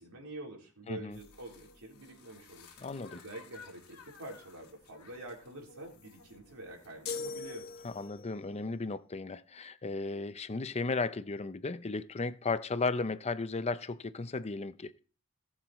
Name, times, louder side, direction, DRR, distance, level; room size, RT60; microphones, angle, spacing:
voice 1, 0.0-2.8 3.1-7.7, right 1 dB, 75° right, 3.8 m, -47 dB
voice 2, 0.9-1.2 2.8-3.2 7.8-15.0, left 3 dB, 30° left, 0.6 m, -35 dB
sound 1, 1.1-8.2, left 5 dB, 80° left, 2.4 m, -57 dB
sound 2, 7.0-8.4, left 4 dB, 50° left, 1.3 m, -40 dB
19.0 x 7.4 x 3.1 m
head